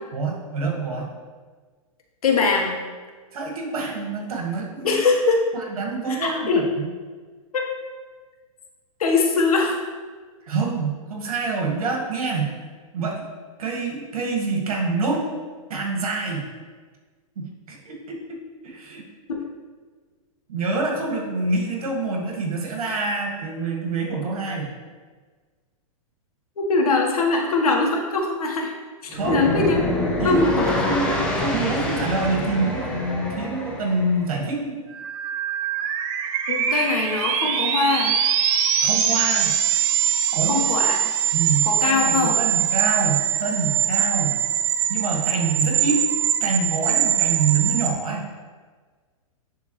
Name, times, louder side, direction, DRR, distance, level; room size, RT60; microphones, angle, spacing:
voice 1, 0.1-1.1 3.3-5.0 5.5-6.9 10.4-12.5 12.9-13.2 13.6-15.2 15.7-16.5 17.4-18.4 18.6-19.0 20.5-24.7 29.1-29.7 30.2-34.8 38.8-39.6 40.3-40.6 41.3-44.4 44.9-46.0 46.4-48.3, right 3 dB, 80° right, -1 dB, 1.9 m, -26 dB
voice 2, 2.2-2.8 4.8-5.4 6.1-6.6 7.5-7.7 9.0-9.8 19.3-19.4 26.6-28.7 29.0-29.8 30.2-30.7 36.5-38.1 40.4-41.0 41.6-42.4, left 3 dB, 85° left, 1 dB, 1.4 m, -22 dB
sound 1, 29.1-34.2, left 2 dB, 5° left, 0.9 m, -26 dB
sound 2, 34.9-47.9, right 9 dB, 35° right, 0.6 m, -22 dB
10.5 x 3.5 x 3.2 m, 1.5 s
hypercardioid pair, 145°, 18 cm